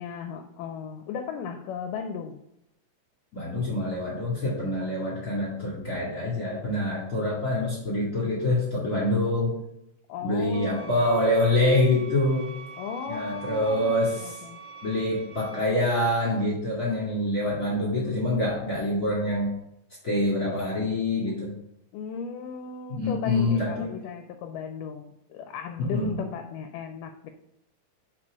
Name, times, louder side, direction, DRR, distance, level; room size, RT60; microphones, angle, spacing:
voice 1, 0.0-2.4 10.1-11.1 12.8-14.6 21.9-27.3, left 6 dB, 80° left, 7 dB, 2.1 m, -36 dB
voice 2, 3.3-9.5 10.2-12.5 13.1-14.4 14.8-19.5 20.0-21.5 22.9-23.9 25.8-26.2, left 1 dB, 30° left, -5 dB, 2.1 m, -26 dB
sound 1, 10.5-15.6, right 5 dB, 80° right, 2.6 m, -44 dB
6.0 x 4.6 x 4.9 m, 0.81 s
omnidirectional pair, 3.9 m